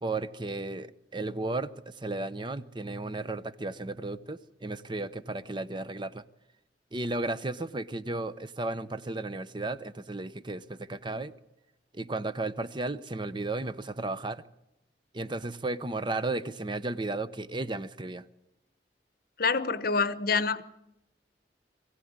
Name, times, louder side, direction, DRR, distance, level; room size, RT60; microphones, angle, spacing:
voice 1, 0.0-6.2 6.9-11.3 11.9-14.4 15.1-18.3, right 2 dB, 25° right, 0.8 m, -34 dB
voice 2, 19.4-20.6, left 4 dB, 55° left, 1.0 m, -26 dB
22.5 x 16.0 x 9.6 m
head